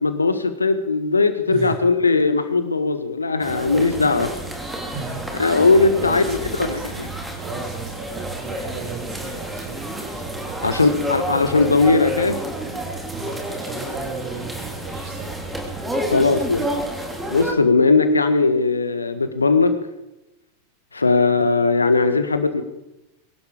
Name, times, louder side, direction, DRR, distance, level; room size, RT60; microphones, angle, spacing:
voice 1, 0.0-4.3 5.4-6.8 10.6-12.4 16.1-16.7 17.3-19.7 20.9-22.6, left 3 dB, 80° left, 10 dB, 1.5 m, -18 dB
voice 2, 1.5-1.9 4.0-4.2 4.9-7.0 7.4-11.5 13.1-15.3, right 4 dB, 45° right, 0 dB, 6.6 m, -35 dB
sound 1, 3.4-17.5, right 1 dB, 5° right, 3.4 m, -30 dB
23.0 x 12.0 x 5.1 m, 0.94 s
figure-of-eight pair, 90°, 0 cm